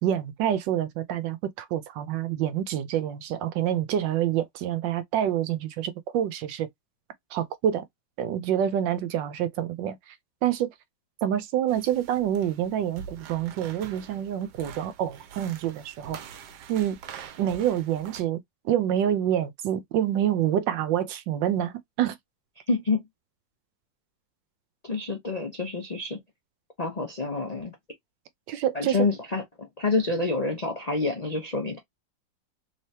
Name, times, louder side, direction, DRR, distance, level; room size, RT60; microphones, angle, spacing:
voice 1, 0.0-6.7 7.3-7.8 8.2-10.2 10.4-10.7 11.2-16.2 16.7-17.0 17.4-22.2 28.5-29.0, right 10 dB, 85° right, 1.3 m, -27 dB
sound 1, 11.7-18.2, right 7 dB, 70° right, 1.2 m, -45 dB
voice 2, 22.7-23.0 24.8-26.2 26.8-27.7 28.7-31.8, left 3 dB, 55° left, 0.4 m, -28 dB
3.5 x 3.3 x 2.7 m
omnidirectional pair, 2.0 m